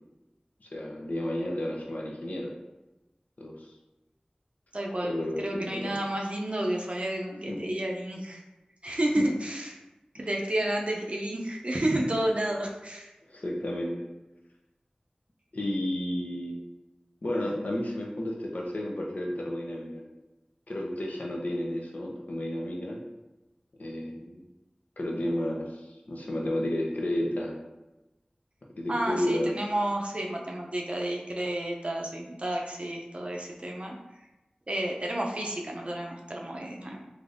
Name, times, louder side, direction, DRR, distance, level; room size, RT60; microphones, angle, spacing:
voice 1, 0.6-2.5 3.4-3.7 5.0-6.0 7.5-7.6 9.1-9.3 13.3-14.0 15.5-16.5 17.2-20.0 20.7-23.0 23.8-24.4 25.0-27.5 28.8-29.5, left 1 dB, 70° left, -1 dB, 0.6 m, -32 dB
voice 2, 4.7-5.1 5.4-8.4 8.8-9.8 10.1-13.1 28.9-34.0 34.7-37.0, right 1 dB, 45° right, 0 dB, 0.5 m, -31 dB
3.3 x 2.6 x 2.5 m, 1.0 s
wide cardioid pair, 50°, 3 cm